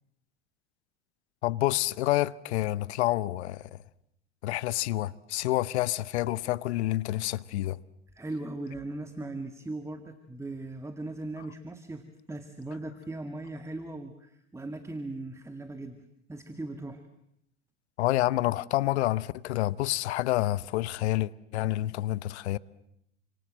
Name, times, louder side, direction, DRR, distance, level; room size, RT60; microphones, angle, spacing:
voice 1, 1.4-3.8 4.4-7.8 18.0-22.6, left 16 dB, 70° left, 1.0 m, -28 dB
voice 2, 8.1-17.0, right 2 dB, 10° right, 2.0 m, -39 dB
29.5 x 26.5 x 7.6 m
hypercardioid pair, 80°, 34 cm